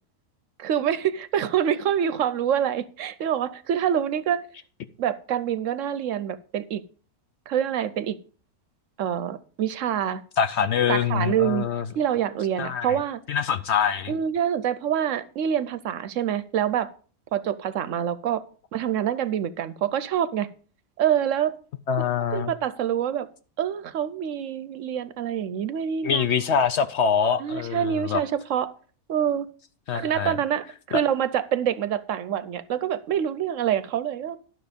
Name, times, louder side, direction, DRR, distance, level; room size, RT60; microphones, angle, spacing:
voice 1, 0.6-4.4 5.0-6.8 7.5-8.2 9.0-10.2 10.9-11.7 12.0-13.2 14.1-16.9 17.3-18.4 18.7-20.5 21.0-21.6 22.0-22.1 22.3-23.3 23.6-26.2 27.4-28.7 29.1-29.5 29.9-34.4, right 9 dB, 70° right, 15 dB, 0.9 m, -26 dB
voice 2, 10.4-11.9 12.6-12.9 13.3-14.1 21.9-22.5 26.0-28.2 29.9-30.3 30.9-31.0, left 7 dB, 60° left, 12 dB, 0.8 m, -24 dB
12.0 x 6.2 x 5.1 m, 0.40 s
omnidirectional pair, 1.5 m